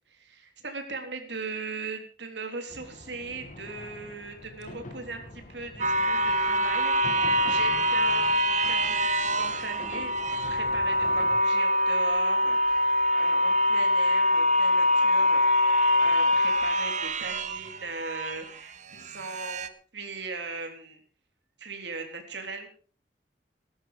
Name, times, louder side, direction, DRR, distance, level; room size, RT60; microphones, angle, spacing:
voice 1, 0.1-6.9 7.4-15.4 16.0-21.0 21.6-22.7, right 3 dB, 70° right, 5 dB, 3.6 m, -39 dB
sound 1, 2.7-11.4, left 1 dB, 45° left, 2.4 m, -45 dB
sound 2, 5.8-18.5 19.1-19.7, left 1 dB, 40° right, 1.1 m, -24 dB
16.5 x 12.5 x 5.1 m, 0.41 s
head